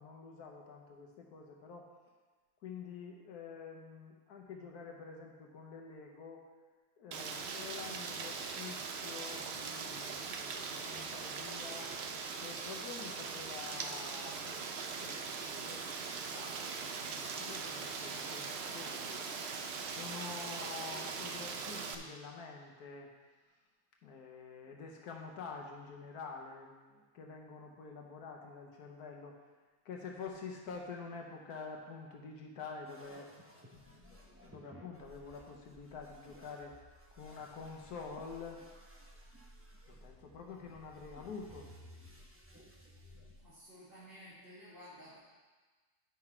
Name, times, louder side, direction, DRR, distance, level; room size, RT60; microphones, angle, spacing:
voice 1, 0.0-1.9 2.6-6.5 7.0-12.0 12.4-14.7 15.0-19.2 19.9-23.1 24.0-29.4 29.8-33.3 33.7-38.6 39.9-41.7, left 5 dB, 80° left, 1 dB, 1.4 m, -48 dB
Rain, 7.1-21.9, right 5 dB, 55° right, 0.7 m, -41 dB
sound 1, 32.9-43.5, equal, 10° right, 0.7 m, -57 dB
voice 2, 43.4-45.2, equal, 40° right, -11 dB, 2.3 m, -53 dB
10.0 x 6.1 x 4.4 m, 1.3 s
omnidirectional pair, 1.6 m